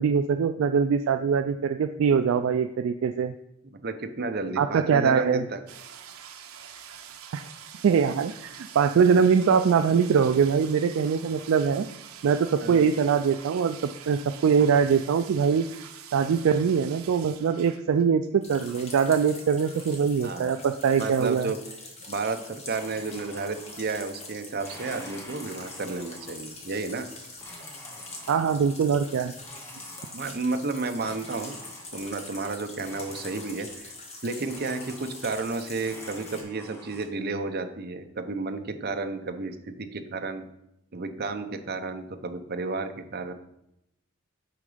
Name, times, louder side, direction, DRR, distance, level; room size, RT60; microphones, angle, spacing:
voice 1, 0.0-3.3 4.6-5.5 7.3-7.5 7.8-11.9 12.2-13.8 14.1-15.7 16.1-21.5 28.3-29.3, right 6 dB, 65° right, 8 dB, 0.3 m, -23 dB
voice 2, 3.8-5.6 12.6-12.8 20.2-20.6 21.0-21.6 22.1-27.1 30.1-31.6 31.9-33.9 34.2-40.4 40.9-43.3, right 3 dB, 45° right, 7 dB, 0.7 m, -32 dB
sound 1, 5.7-18.0 18.3-20.2 20.5-21.3, right 8 dB, 80° right, 0.7 m, -46 dB
sound 2, 18.4-36.4, left 2 dB, 30° left, 1.3 m, -44 dB
Domestic sounds home sounds, 22.7-24.1 24.5-26.6 27.4-28.7 29.4-30.5 31.0-32.2 32.8-33.9 34.5-35.5 35.8-37.1, equal, 10° left, 1.0 m, -48 dB
8.8 x 3.9 x 4.9 m, 0.82 s
head